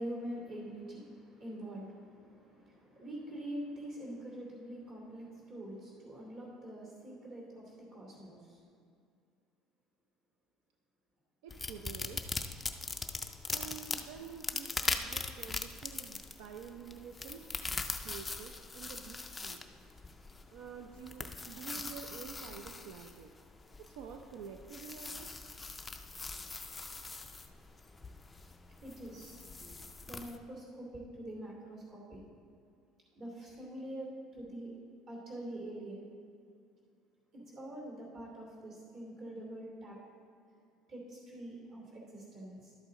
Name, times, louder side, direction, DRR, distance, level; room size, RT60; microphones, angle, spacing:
voice 1, 0.0-8.6 28.8-29.7 30.0-32.2 33.1-34.8 35.1-36.1 37.3-40.0 40.9-42.7, right 1 dB, 40° right, -2 dB, 2.6 m, -45 dB
voice 2, 11.4-12.4 13.5-17.5 18.0-19.6 20.5-23.3 23.8-25.3, right 6 dB, 80° right, 4 dB, 0.5 m, -48 dB
sound 1, 11.5-30.4, left 3 dB, 10° left, 0.3 m, -41 dB
11.5 x 8.1 x 3.7 m, 2.3 s
cardioid pair, 175°, 0 cm